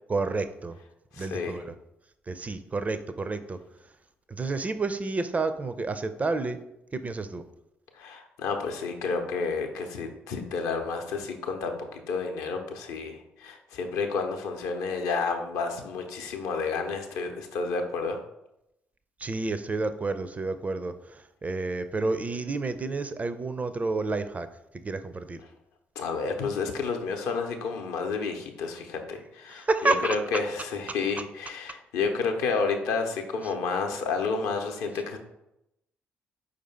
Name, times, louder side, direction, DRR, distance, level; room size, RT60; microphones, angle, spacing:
voice 1, 0.1-0.8 1.2-1.7 2.3-3.6 4.3-6.6 6.9-7.4 19.2-24.5 24.7-25.4 29.5-30.2 33.4-33.5, right 3 dB, 25° right, 11 dB, 0.4 m, -30 dB
voice 2, 1.1-1.6 7.9-18.2 26.0-35.2, left 4 dB, 65° left, 4 dB, 0.6 m, -30 dB
4.8 x 2.6 x 4.3 m, 0.84 s
figure-of-eight pair, 40°, 6 cm